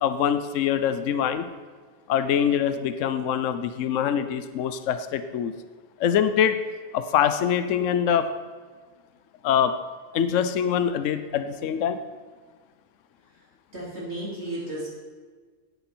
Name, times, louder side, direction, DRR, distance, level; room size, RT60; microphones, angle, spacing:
voice 1, 0.0-1.5 2.1-5.5 6.0-6.6 6.9-8.3 9.4-9.7 10.1-12.0, left 8 dB, 70° left, 10 dB, 1.0 m, -24 dB
voice 2, 13.7-14.9, right 1 dB, 55° right, -6 dB, 4.1 m, -34 dB
17.0 x 9.5 x 4.4 m, 1.5 s
omnidirectional pair, 1.4 m